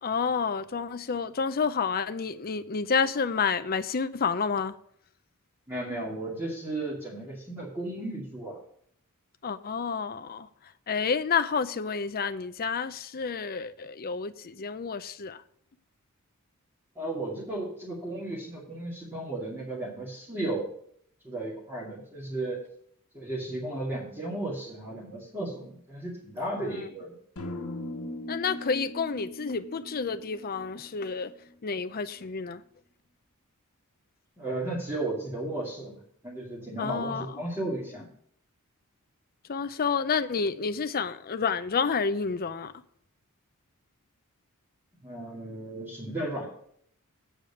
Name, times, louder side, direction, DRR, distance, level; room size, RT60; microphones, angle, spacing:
voice 1, 0.0-4.7 9.4-10.5 10.9-15.4 26.6-26.9 28.3-31.3 31.6-32.6 36.8-37.4 39.5-42.7, left 5 dB, 40° left, 0.6 m, -29 dB
voice 2, 5.7-8.6 17.0-20.6 21.2-22.6 23.1-27.2 34.4-38.1 45.0-46.5, right 2 dB, 10° right, 2.4 m, -34 dB
sound 1, 27.4-31.5, left 1 dB, 80° left, 1.3 m, -40 dB
8.7 x 5.0 x 6.9 m
head